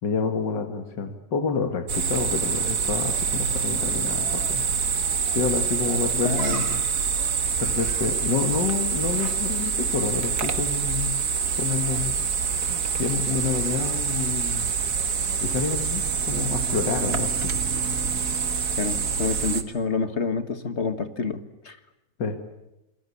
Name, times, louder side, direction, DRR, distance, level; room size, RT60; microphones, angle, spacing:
voice 1, 0.0-4.7 5.3-6.7 7.6-11.2 11.6-12.2 13.0-14.7 15.4-17.5 22.2-22.4, left 5 dB, 80° left, 6 dB, 2.4 m, -28 dB
sound 1, 1.9-19.6, right 6 dB, 60° right, 2.1 m, -26 dB
voice 2, 6.2-6.9 18.8-21.8, left 5 dB, 40° left, 9 dB, 1.9 m, -28 dB
29.0 x 21.5 x 8.5 m, 0.94 s
omnidirectional pair, 1.9 m